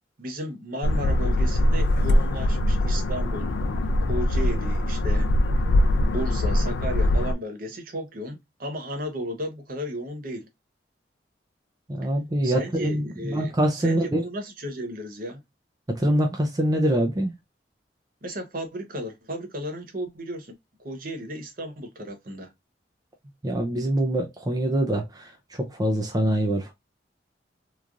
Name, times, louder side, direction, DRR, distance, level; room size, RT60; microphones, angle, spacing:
voice 1, 0.2-3.5 4.0-5.3 6.0-10.5 12.4-15.4 18.2-20.5 20.8-22.5, equal, 50° right, 0.7 m, -34 dB
sound 1, 0.8-7.3, left 1 dB, 80° left, 0.4 m, -22 dB
voice 2, 11.9-14.2 15.9-17.3 23.4-26.7, right 1 dB, 20° right, 0.4 m, -24 dB
3.1 x 2.3 x 2.4 m
head